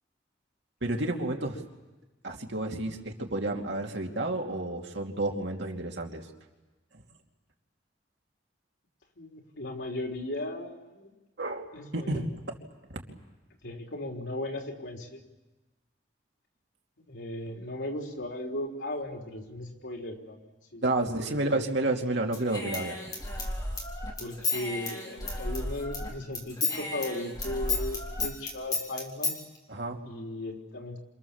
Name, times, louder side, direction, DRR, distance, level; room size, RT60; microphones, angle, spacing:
voice 1, 0.8-1.6 2.2-6.3 11.4-12.3 12.9-13.2 20.8-23.0 29.7-30.0, right 2 dB, 70° right, 1 dB, 2.8 m, -30 dB
voice 2, 9.2-11.1 11.7-12.2 13.6-15.2 17.1-21.6 24.2-29.4 30.0-31.0, left 1 dB, 85° left, 1 dB, 3.8 m, -37 dB
Human voice / Scissors, 22.3-26.1 26.3-29.4, left 3 dB, 20° left, 3.8 m, -33 dB
28.0 x 27.5 x 7.3 m, 1.1 s
head